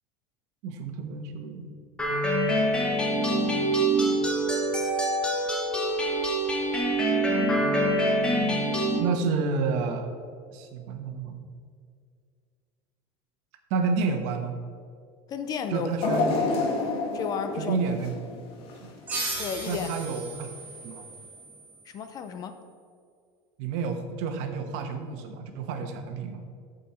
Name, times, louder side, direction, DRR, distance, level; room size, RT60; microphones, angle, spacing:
voice 1, 0.6-1.7 9.0-10.1 10.5-11.4 13.7-14.5 15.7-16.6 17.5-18.1 18.8-18.9 19.7-20.5 20.8-21.0 23.6-26.4, right 5 dB, 55° right, 5 dB, 1.1 m, -30 dB
sound 1, 2.0-9.0, right 1 dB, 5° left, 1.0 m, -25 dB
voice 2, 15.3-15.9 17.1-17.8 19.4-19.9 21.9-22.5, left 7 dB, 25° left, 8 dB, 0.5 m, -33 dB
sound 2, 16.0-19.1 19.6-19.7 20.7-20.8, left 3 dB, 75° left, 1.6 m, -29 dB
sound 3, 19.1-22.3, right 2 dB, 10° right, 1.8 m, -37 dB
13.5 x 5.4 x 4.3 m, 2.2 s
cardioid pair, 175°, 14 cm